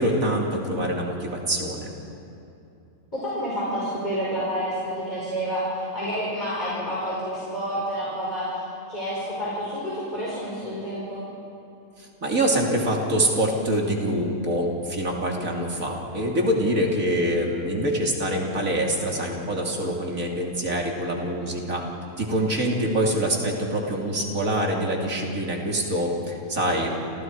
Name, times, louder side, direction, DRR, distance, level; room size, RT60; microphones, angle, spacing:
voice 1, 0.0-1.9 12.2-21.8 22.2-27.2, right 1 dB, 70° right, -1 dB, 3.4 m, -25 dB
voice 2, 3.1-8.6 8.9-11.2, equal, 30° left, -7 dB, 5.5 m, -29 dB
29.5 x 28.0 x 4.8 m, 2.7 s
omnidirectional pair, 1.5 m